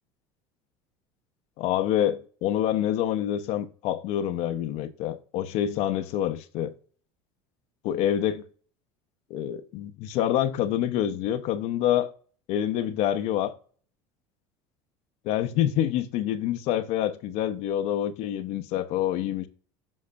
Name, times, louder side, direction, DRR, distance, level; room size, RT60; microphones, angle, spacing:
voice 1, 1.6-6.7 7.8-8.4 9.3-12.1 12.5-13.5 15.3-19.5, left 11 dB, 60° left, 0.6 m, -27 dB
7.3 x 5.6 x 2.3 m
supercardioid pair, 100°, 12 cm